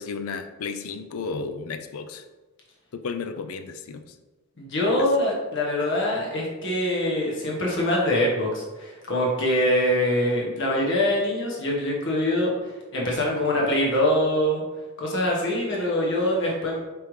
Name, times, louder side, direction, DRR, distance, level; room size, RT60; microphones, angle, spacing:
voice 1, 0.0-2.2 2.9-4.2 5.0-5.1, left 4 dB, 80° left, 8 dB, 0.4 m, -33 dB
voice 2, 4.6-14.6 15.0-16.8, left 1 dB, 55° left, -3 dB, 1.2 m, -24 dB
5.0 x 3.3 x 3.1 m, 1.2 s
head